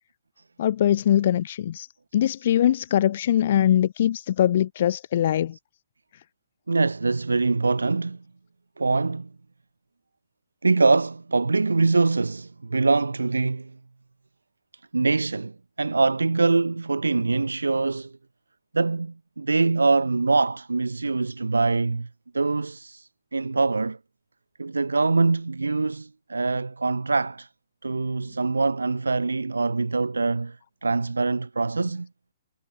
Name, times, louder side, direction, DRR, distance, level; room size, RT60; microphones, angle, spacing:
voice 1, 0.6-1.9 2.1-5.6, left 11 dB, 55° left, 5.6 m, -22 dB
voice 2, 6.7-8.2 8.8-9.3 10.6-13.7 14.9-15.5 15.8-18.1 18.7-22.1 22.3-24.0 24.6-27.5 27.8-30.6 30.8-32.1, right 3 dB, 85° right, 7.5 m, -23 dB
figure-of-eight pair, 125°, 0 cm